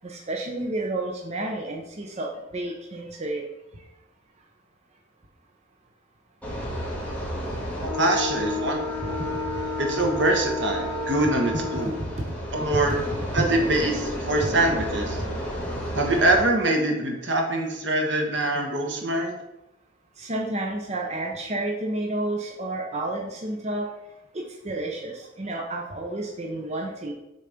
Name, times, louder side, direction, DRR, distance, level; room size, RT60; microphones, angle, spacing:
voice 1, 0.0-3.5 11.7-11.8 12.6-12.9 20.2-23.9 24.3-27.1, right 2 dB, 35° right, 0 dB, 0.8 m, -31 dB
sound 1, 6.4-16.4, left 1 dB, 10° left, 1.8 m, -31 dB
voice 2, 7.8-9.2 9.8-11.9 12.5-13.0 13.3-15.2 15.9-19.4, right 1 dB, 70° right, 2 dB, 1.4 m, -24 dB
6.8 x 4.1 x 5.1 m, 0.92 s
head